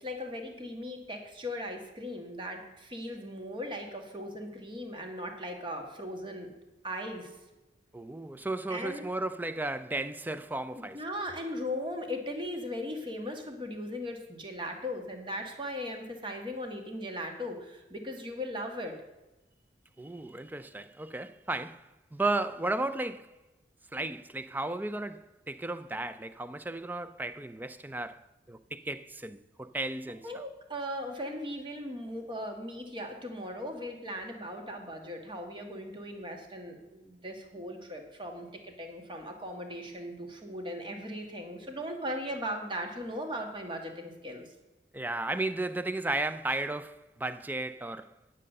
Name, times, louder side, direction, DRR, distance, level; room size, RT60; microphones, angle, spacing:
voice 1, 0.0-6.5 6.8-7.3 8.7-9.0 10.8-18.9 30.2-44.4, equal, 25° right, 1.5 m, -38 dB
voice 2, 7.9-11.0 20.0-23.4 23.9-30.3 44.9-48.1, right 2 dB, 10° right, 0.4 m, -34 dB
9.8 x 7.6 x 6.5 m
head